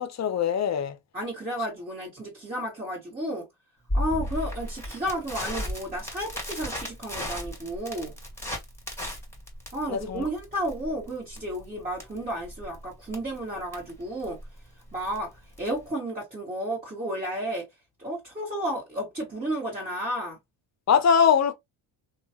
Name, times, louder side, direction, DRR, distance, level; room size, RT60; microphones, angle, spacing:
voice 1, 0.0-1.0 9.9-10.2 20.9-21.5, left 7 dB, 35° left, 0.6 m, -22 dB
voice 2, 1.1-3.4 3.9-8.1 9.7-14.4 14.9-15.3 15.6-17.6 18.0-20.4, right 1 dB, 15° right, 1.6 m, -32 dB
Crackle, 3.9-15.9, left 1 dB, 5° left, 1.8 m, -35 dB
3.0 x 2.4 x 2.9 m
cardioid pair, 95°, 49 cm